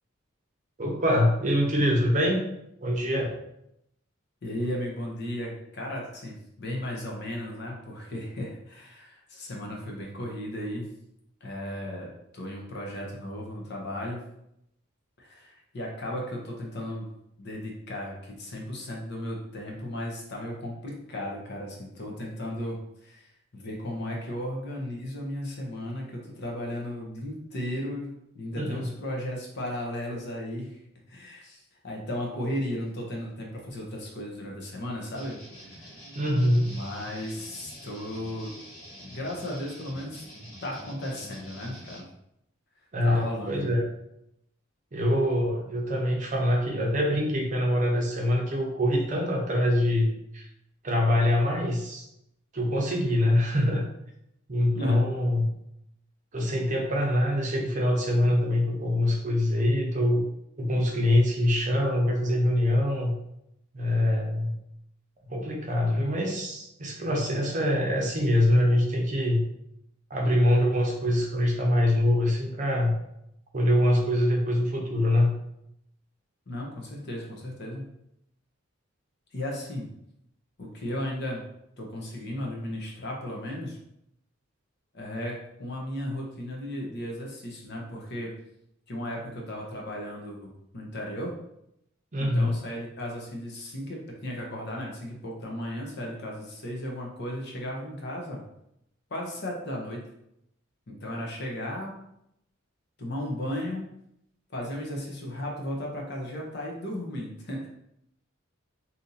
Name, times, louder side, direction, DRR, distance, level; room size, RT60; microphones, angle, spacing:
voice 1, 0.8-2.4 2.8-3.3 28.6-28.9 36.1-36.7 42.9-43.9 44.9-50.5 50.8-52.1 52.5-53.8 54.5-55.5 56.3-60.2 60.6-63.1 63.7-64.5 65.3-69.4 70.1-72.9 73.5-75.3 92.1-92.5, left 1 dB, 35° right, 0 dB, 0.6 m, -24 dB
voice 2, 4.4-10.9 11.4-14.2 15.2-17.1 17.4-30.8 31.1-36.0 36.6-38.6 39.0-40.3 40.6-42.0 43.0-43.7 54.8-55.0 76.5-77.9 79.3-79.9 80.6-81.5 81.8-83.8 84.9-88.3 88.9-91.4 92.2-98.4 99.1-100.1 100.9-101.9 103.0-103.9 104.5-107.7, left 1 dB, 55° left, -1 dB, 0.8 m, -35 dB
sound 1, 35.1-42.0, equal, 85° left, 1.5 m, -46 dB
2.8 x 2.6 x 3.9 m, 0.79 s
head